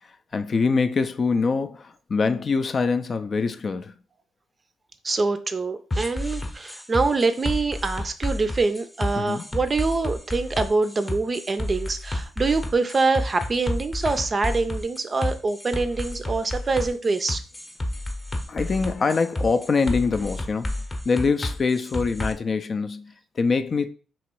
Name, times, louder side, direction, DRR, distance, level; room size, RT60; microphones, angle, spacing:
voice 1, 0.3-3.9 9.2-9.4 18.5-20.7 21.1-23.9, left 4 dB, 40° left, 0.4 m, -24 dB
voice 2, 5.0-17.4, right 3 dB, 30° right, 0.5 m, -25 dB
sound 1, 5.9-22.3, left 1 dB, 20° left, 0.8 m, -30 dB
3.0 x 2.9 x 4.6 m
cardioid pair, 90°, 0 cm